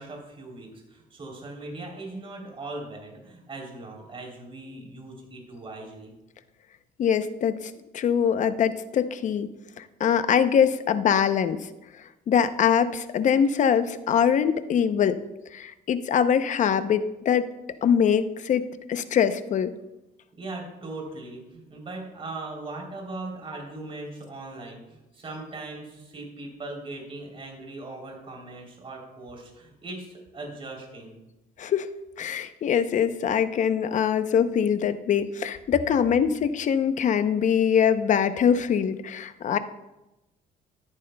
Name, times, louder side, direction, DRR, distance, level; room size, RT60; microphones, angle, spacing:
voice 1, 0.0-6.1 20.4-31.1, right 2 dB, 35° right, 0 dB, 3.3 m, -39 dB
voice 2, 7.0-7.5 7.9-9.5 10.0-11.6 12.3-15.2 15.5-17.5 17.8-19.7 31.6-31.9 32.2-39.6, left 8 dB, 45° left, 11 dB, 0.7 m, -23 dB
13.5 x 10.5 x 2.2 m, 0.99 s
cardioid pair, 110°, 17 cm